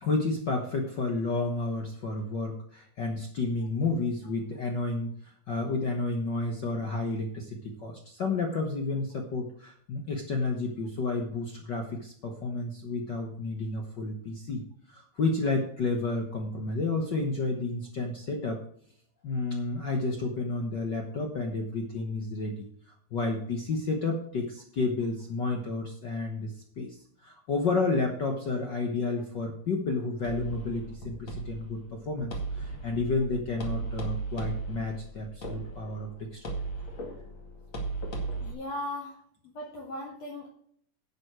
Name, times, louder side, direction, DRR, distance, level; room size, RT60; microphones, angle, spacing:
voice 1, 0.0-5.1 5.5-14.6 14.9-18.6 19.2-22.7 23.1-27.0 27.2-36.5, left 3 dB, 70° left, 3 dB, 1.0 m, -31 dB
sound 1, 30.2-38.5, right 3 dB, 40° left, 2.5 m, -36 dB
voice 2, 38.4-39.2 39.5-40.5, left 1 dB, 55° left, 0 dB, 2.5 m, -37 dB
11.0 x 8.5 x 4.7 m, 0.64 s
omnidirectional pair, 3.9 m